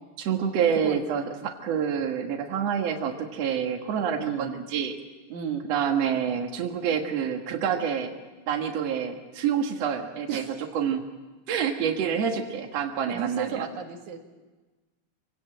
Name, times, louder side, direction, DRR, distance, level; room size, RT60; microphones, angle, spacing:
voice 1, 0.2-5.0 5.6-8.1 8.5-10.4 10.7-11.0 11.5-13.7, right 7 dB, 65° right, 2 dB, 2.6 m, -27 dB
voice 2, 4.2-4.5 5.3-5.6 10.3-10.5 13.1-14.2, right 8 dB, 80° right, 3 dB, 3.3 m, -33 dB
25.5 x 17.5 x 9.0 m, 1.2 s
omnidirectional pair, 3.3 m